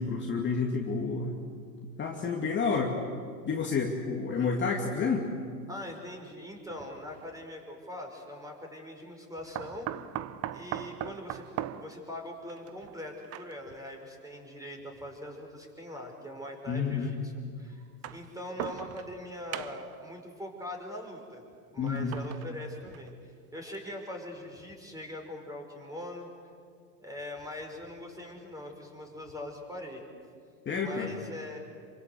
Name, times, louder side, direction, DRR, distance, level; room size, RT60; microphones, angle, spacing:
voice 1, 0.0-1.3 2.0-3.0 3.5-5.3 16.7-17.1 21.8-22.2 30.7-31.1, left 5 dB, 25° left, -1 dB, 2.5 m, -29 dB
voice 2, 5.7-9.9 10.5-11.5 11.8-17.3 17.6-17.8 18.1-21.4 21.7-26.3 27.0-30.1 30.8-31.6, left 1 dB, 5° right, 2 dB, 5.6 m, -42 dB
sound 1, 7.1-7.3 9.6-13.8 14.8-14.9 16.1-16.2 17.8-19.2 19.5-20.0 21.9-23.2 23.7-23.8 24.2-24.3, right 12 dB, 30° right, 0.8 m, -40 dB
27.5 x 24.5 x 8.1 m, 2.1 s
hypercardioid pair, 115°, 48 cm